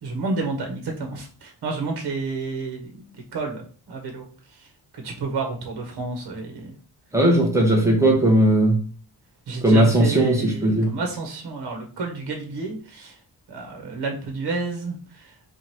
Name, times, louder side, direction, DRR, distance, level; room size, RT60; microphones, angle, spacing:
voice 1, 0.0-4.2 4.5-4.7 4.9-6.7 9.5-13.2 13.5-15.3, right 3 dB, 70° right, 1.2 m, -30 dB
voice 2, 7.1-8.8 9.6-10.9, right 1 dB, 5° right, 1.1 m, -18 dB
4.8 x 2.5 x 4.4 m
wide cardioid pair, 165°, 40 cm